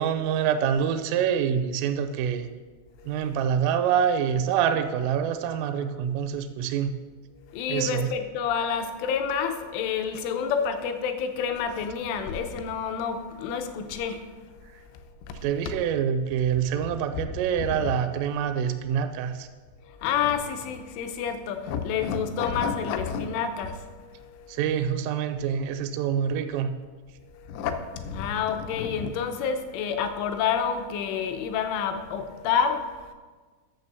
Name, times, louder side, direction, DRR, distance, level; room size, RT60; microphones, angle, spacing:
voice 1, 0.0-2.5 3.1-6.9 7.7-8.1 15.4-19.5 24.5-26.7, right 8 dB, 85° right, 8 dB, 3.2 m, -26 dB
voice 2, 3.0-3.4 7.5-14.3 15.3-15.4 17.6-17.9 19.8-24.6 27.3-33.1, left 7 dB, 80° left, 7 dB, 3.2 m, -29 dB
9.1 x 6.9 x 6.8 m, 1.4 s
omnidirectional pair, 5.7 m